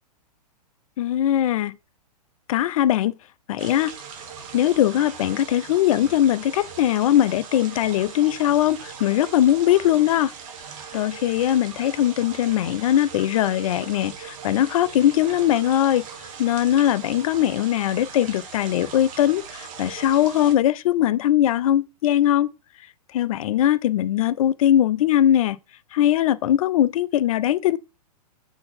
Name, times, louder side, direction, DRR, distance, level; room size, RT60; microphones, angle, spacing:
voice 1, 1.0-1.7 2.5-3.2 3.5-3.9 4.5-10.3 10.9-16.0 16.4-22.5 23.1-25.6 25.9-27.8, left 12 dB, 55° left, 0.5 m, -20 dB
sound 1, 3.6-20.5, right 6 dB, 50° right, 1.4 m, -40 dB
6.4 x 3.9 x 4.2 m
hypercardioid pair, 125°, 21 cm